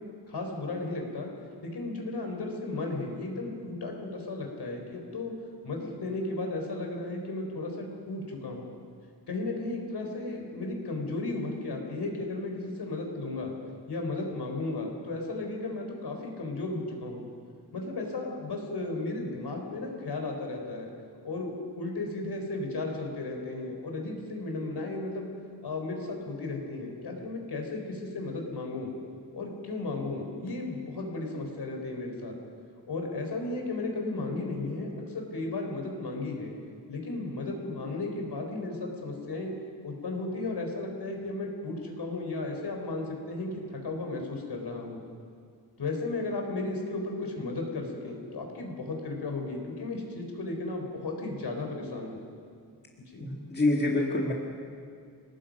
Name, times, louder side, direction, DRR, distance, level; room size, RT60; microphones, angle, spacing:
voice 1, 0.3-1.3 1.6-5.3 5.6-8.7 9.3-13.6 13.9-17.3 17.7-20.9 21.2-25.3 25.6-28.9 29.3-32.3 32.9-36.5 36.9-39.5 39.8-45.0 45.8-52.2 53.1-53.2, left 2 dB, 65° left, 2 dB, 4.1 m, -34 dB
voice 2, 53.2-54.3, left 2 dB, 25° left, 0 dB, 1.8 m, -26 dB
28.5 x 18.5 x 5.2 m, 2.2 s
wide cardioid pair, 180°, 42 cm